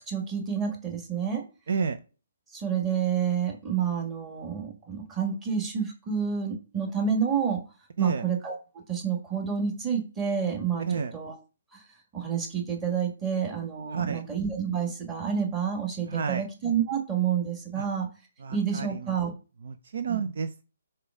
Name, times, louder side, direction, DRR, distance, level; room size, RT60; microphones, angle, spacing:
voice 1, 0.1-1.4 2.5-7.6 8.0-8.6 8.9-10.9 11.1-11.4 12.1-18.1 18.5-19.3 20.1-20.2, right 7 dB, 15° right, 1 dB, 1.7 m, -29 dB
voice 2, 1.7-2.0 8.0-8.2 10.9-11.1 13.9-14.2 16.1-16.4 17.8-17.9 18.4-19.2 19.6-20.6, right 6 dB, 60° right, 10 dB, 0.6 m, -30 dB
4.9 x 4.4 x 4.9 m, 0.34 s
hypercardioid pair, 145°, 0 cm